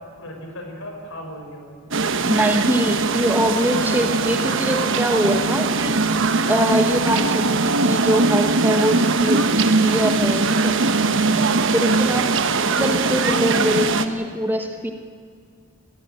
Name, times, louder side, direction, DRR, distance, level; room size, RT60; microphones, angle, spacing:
voice 1, 0.0-2.2 11.2-11.6, equal, 70° left, 2 dB, 5.5 m, -37 dB
sound 1, 1.9-14.1, right 3 dB, 60° right, 1.1 m, -20 dB
voice 2, 2.3-10.8 11.7-12.3 12.7-14.9, equal, 10° right, 4 dB, 1.2 m, -23 dB
20.5 x 15.0 x 8.9 m, 2.2 s
head